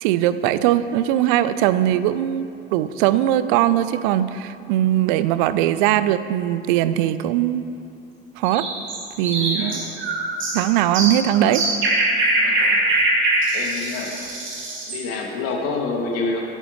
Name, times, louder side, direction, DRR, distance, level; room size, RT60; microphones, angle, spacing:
voice 1, 0.0-7.7 8.4-8.7 9.2-9.8 10.5-11.6, right 12 dB, 55° right, 14 dB, 0.6 m, -20 dB
sound 1, 8.4-15.0, right 2 dB, 40° right, 2.9 m, -22 dB
voice 2, 9.5-9.9 12.4-12.8 13.5-14.1 14.9-16.4, left 3 dB, 50° left, 0 dB, 2.4 m, -27 dB
20.0 x 11.0 x 3.2 m, 2.6 s
figure-of-eight pair, 65°, 31 cm